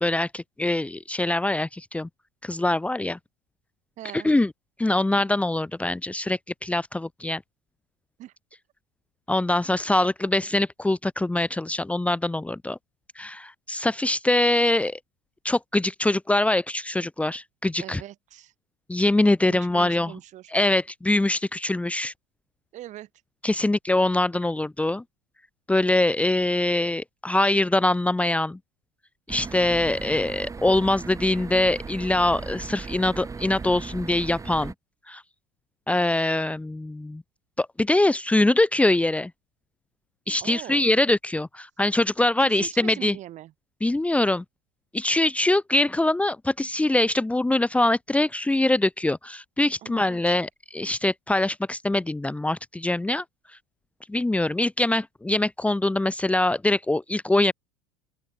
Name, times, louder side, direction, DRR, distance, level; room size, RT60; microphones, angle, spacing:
voice 1, 0.0-2.1 2.4-3.2 4.1-4.5 4.8-7.4 9.3-12.8 13.1-15.0 15.4-18.0 18.9-20.1 20.5-22.1 23.4-25.0 25.7-28.6 29.3-34.7 35.1-35.2 35.9-37.2 37.6-39.3 40.3-43.2 43.8-44.4 44.9-53.2 54.1-57.5, left 2 dB, 10° left, 1.4 m, -23 dB
voice 2, 4.0-4.3 8.2-8.3 10.0-10.1 17.8-18.5 19.4-20.5 22.7-23.1 40.4-40.9 42.4-43.5 49.8-50.3, right 14 dB, 45° right, 5.6 m, -41 dB
sound 1, 29.3-34.7, right 4 dB, 20° right, 3.7 m, -37 dB
open air
hypercardioid pair, 75°, 17 cm